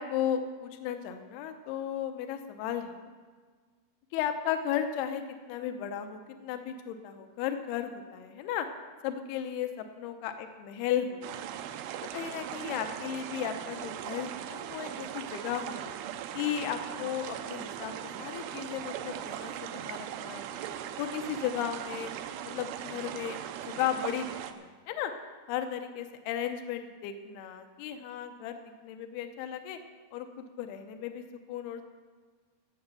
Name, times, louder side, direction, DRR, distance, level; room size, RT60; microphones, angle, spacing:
voice 1, 0.0-3.1 4.1-8.7 9.0-11.6 12.1-15.9 16.3-17.9 18.2-20.4 21.0-22.1 22.5-23.4 23.7-25.1 25.5-29.8 30.1-31.8, left 9 dB, 80° left, 7 dB, 2.8 m, -35 dB
sound 1, 11.2-24.5, right 10 dB, 80° right, 2.4 m, -39 dB
16.5 x 7.9 x 6.8 m, 1.5 s
omnidirectional pair, 4.7 m